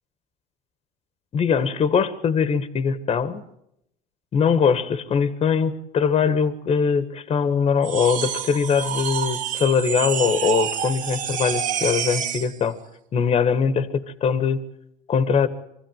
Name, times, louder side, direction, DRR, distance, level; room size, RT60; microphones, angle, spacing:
voice 1, 1.3-3.4 4.3-12.8 13.1-14.6 15.1-15.5, left 6 dB, 35° left, 12 dB, 1.6 m, -22 dB
sound 1, 7.8-12.6, right 8 dB, 50° right, 1.9 m, -28 dB
25.0 x 15.5 x 9.3 m, 0.81 s
supercardioid pair, 105°, 17 cm